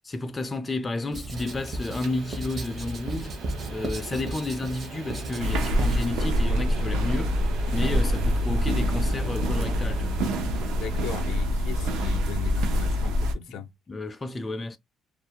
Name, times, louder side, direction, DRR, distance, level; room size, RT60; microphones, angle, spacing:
voice 1, 0.1-3.4 3.7-7.4 7.7-10.2 13.5-13.6 13.9-14.8, left 2 dB, 20° left, 0.3 m, -31 dB
Writing, 1.1-6.1, right 2 dB, 35° right, 0.5 m, -35 dB
sound 1, 1.3-11.4, right 2 dB, 70° right, 1.2 m, -41 dB
sound 2, 5.4-13.3, equal, 90° right, 0.5 m, -25 dB
voice 2, 10.7-13.7, left 8 dB, 80° left, 0.5 m, -38 dB
2.4 x 2.0 x 2.7 m
cardioid pair, 135°, 0 cm